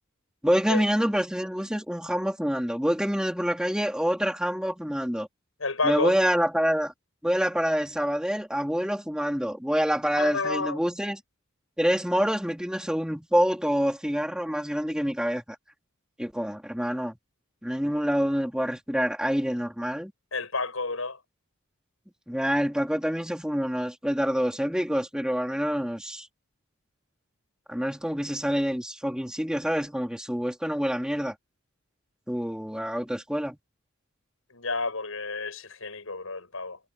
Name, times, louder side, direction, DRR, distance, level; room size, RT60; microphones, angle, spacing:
voice 1, 0.4-5.3 5.8-6.9 7.2-11.2 11.8-15.6 16.2-17.2 17.6-20.1 22.3-26.3 27.7-31.3 32.3-33.6, equal, 5° right, 3.8 m, -27 dB
voice 2, 5.6-6.2 10.2-10.8 20.3-21.2 34.5-36.8, left 3 dB, 90° left, 6.7 m, -30 dB
head